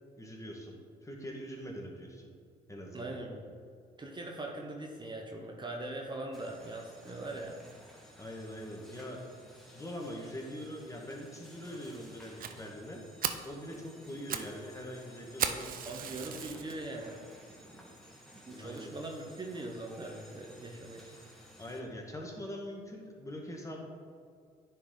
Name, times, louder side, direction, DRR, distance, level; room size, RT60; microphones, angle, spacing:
voice 1, 0.2-0.8 1.0-2.3 2.7-3.1 8.2-9.2 9.7-13.0 13.4-15.7 18.5-18.9 21.6-23.8, equal, 20° left, 0 dB, 1.6 m, -43 dB
voice 2, 2.9-3.5 4.0-7.6 15.8-17.2 17.6-17.9 18.5-21.1, right 2 dB, 25° right, 0 dB, 1.0 m, -41 dB
sound 1, 6.3-21.8, equal, ahead, 1.6 m, -55 dB
Fire, 12.4-12.5 12.9-13.0 13.2-13.5 14.0-14.5 14.8-14.9 15.4-16.7 17.3-17.4 18.0-18.1 18.3-18.4 18.8-18.9, right 8 dB, 55° right, 0.6 m, -35 dB
10.0 x 4.4 x 3.8 m, 2.2 s
supercardioid pair, 65°, 17 cm